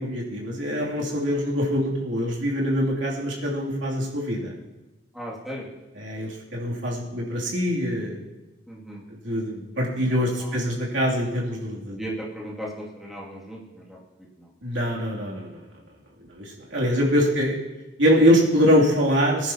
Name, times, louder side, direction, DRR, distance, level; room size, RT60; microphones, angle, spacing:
voice 1, 0.0-4.5 6.0-8.2 9.2-12.0 14.6-15.6 16.4-17.6 18.0-19.5, equal, 80° right, -3 dB, 2.7 m, -23 dB
voice 2, 5.1-5.7 8.7-9.0 10.4-10.5 12.0-14.0 14.4-14.5, equal, ahead, -5 dB, 2.3 m, -36 dB
19.5 x 10.5 x 2.9 m, 1.1 s
head